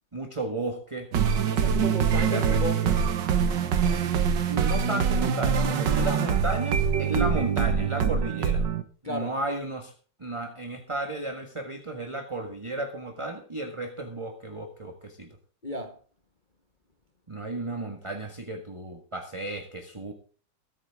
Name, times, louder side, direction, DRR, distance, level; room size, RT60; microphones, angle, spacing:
voice 1, 0.1-1.1 2.3-2.6 4.5-8.7 9.0-9.9 10.2-15.3 17.3-20.1, right 2 dB, 15° right, 1.5 m, -33 dB
sound 1, 1.1-8.8, right 7 dB, 60° right, 1.8 m, -24 dB
voice 2, 1.5-3.0 6.0-6.2 9.0-9.3 15.6-16.0, left 1 dB, 25° left, 1.5 m, -33 dB
22.0 x 9.3 x 3.6 m
omnidirectional pair, 2.3 m